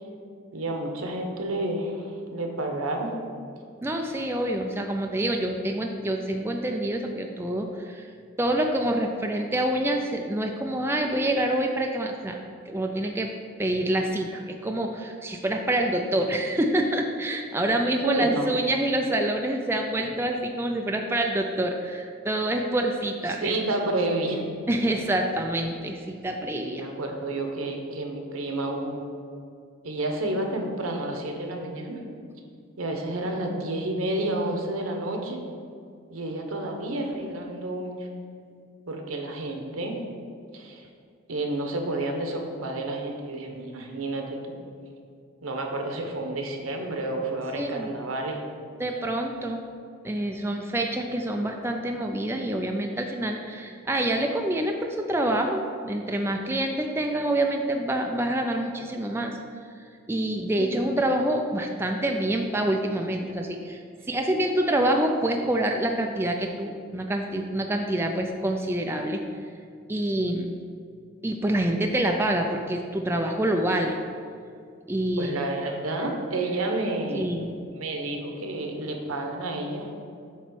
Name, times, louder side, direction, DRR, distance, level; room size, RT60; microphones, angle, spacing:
voice 1, 0.5-3.1 18.0-18.5 23.4-24.4 26.5-29.0 29.8-32.0 32.8-35.4 36.1-38.1 38.9-40.0 40.5-40.9 41.3-44.5 45.4-48.4 60.6-60.9 75.2-77.3 77.7-79.9, right 2 dB, 90° right, 3 dB, 1.0 m, -30 dB
voice 2, 3.8-12.4 12.7-13.3 13.6-23.5 24.7-26.8 47.5-47.9 48.8-49.6 50.0-69.4 69.9-70.5 71.2-74.0 74.9-75.5 77.1-77.5, right 1 dB, 10° right, 3 dB, 0.3 m, -27 dB
8.1 x 3.0 x 6.2 m, 2.3 s
head